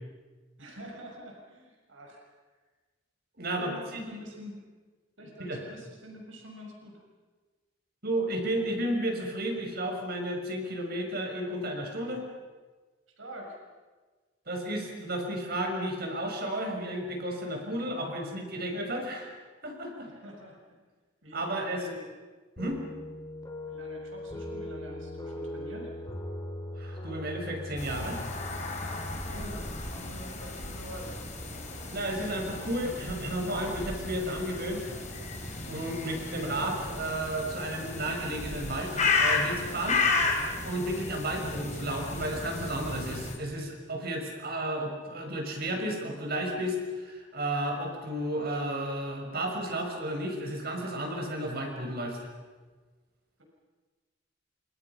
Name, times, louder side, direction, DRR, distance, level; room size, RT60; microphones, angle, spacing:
voice 1, 0.6-2.2 3.5-4.7 5.2-7.0 13.2-13.6 20.0-20.8 21.2-22.1 23.7-25.9 29.3-31.2, equal, 85° right, 0 dB, 6.4 m, -46 dB
voice 2, 3.4-4.0 5.4-5.6 8.0-12.2 14.5-19.3 19.6-20.1 21.3-21.8 22.6-22.8 26.8-28.3 31.9-35.0 35.6-40.0 40.6-52.3, right 1 dB, 55° right, 2 dB, 6.2 m, -33 dB
sound 1, 22.6-29.5, left 1 dB, 20° left, 3.3 m, -40 dB
sound 2, 27.8-43.3, left 3 dB, 40° left, 4.3 m, -33 dB
sound 3, 28.7-41.1, left 1 dB, 15° right, 7.8 m, -51 dB
29.0 x 26.5 x 6.1 m, 1.3 s
head